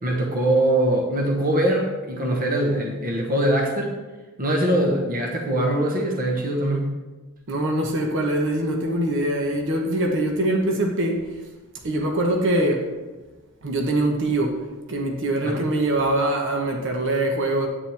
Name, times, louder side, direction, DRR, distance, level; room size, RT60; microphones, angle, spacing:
voice 1, 0.0-4.0 4.4-6.9 15.4-15.7, right 1 dB, 40° right, 1 dB, 1.2 m, -22 dB
voice 2, 7.5-11.2 11.8-12.9 13.6-14.6 14.9-17.7, right 1 dB, 60° right, 2 dB, 1.1 m, -23 dB
10.0 x 8.9 x 3.5 m, 1.2 s
head